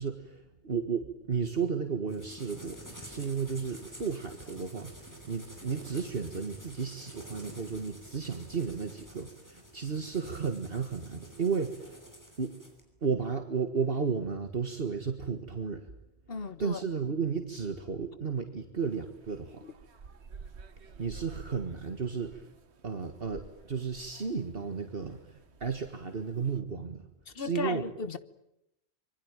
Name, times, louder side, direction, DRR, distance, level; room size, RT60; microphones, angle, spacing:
voice 1, 0.0-12.0 12.4-12.6 13.0-15.9 16.6-19.6 20.8-22.5 22.8-27.0 27.4-27.8, right 5 dB, 60° right, 1.9 m, -33 dB
sound 1, 2.1-12.8, equal, 15° left, 6.1 m, -49 dB
voice 2, 16.3-16.8 19.6-19.7 27.3-28.2, left 4 dB, 60° left, 1.5 m, -36 dB
sound 2, 18.8-26.6, right 5 dB, 85° right, 1.5 m, -51 dB
26.5 x 23.0 x 9.1 m
omnidirectional pair, 1.1 m